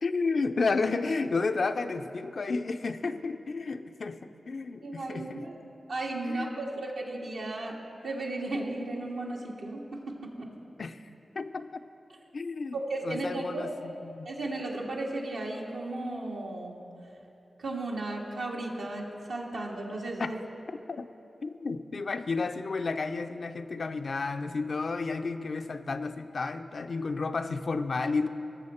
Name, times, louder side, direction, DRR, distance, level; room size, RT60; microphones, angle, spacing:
voice 1, 0.0-5.5 6.2-6.5 10.8-11.0 11.3-11.9 12.3-12.8 13.0-14.3 20.2-20.3 20.9-21.1 21.4-28.3, left 4 dB, 65° left, 9 dB, 0.4 m, -32 dB
voice 2, 4.8-5.5 5.9-7.8 8.0-10.5 12.7-13.7 14.2-16.8 17.6-20.4, right 2 dB, 85° right, -3 dB, 1.6 m, -35 dB
19.0 x 6.9 x 4.3 m, 2.9 s
cardioid pair, 40°, 0 cm